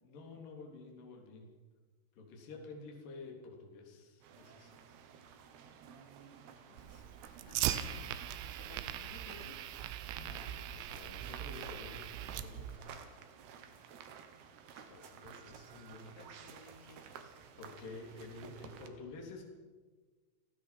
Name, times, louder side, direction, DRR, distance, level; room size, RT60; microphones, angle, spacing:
voice 1, 0.0-1.5 2.1-4.8 6.7-7.1 9.8-13.1 14.7-16.4 16.8-17.3 17.6-19.5, left 3 dB, 45° left, 1 dB, 4.6 m, -51 dB
sound 1, 4.2-18.9, right 7 dB, 65° right, 3.2 m, -54 dB
Fire, 6.8-12.8, right 11 dB, 85° right, 3.7 m, -40 dB
voice 2, 7.5-9.7 16.2-17.6, left 2 dB, 80° left, 1 dB, 5.8 m, -56 dB
29.0 x 19.0 x 6.0 m, 1.4 s
omnidirectional pair, 5.9 m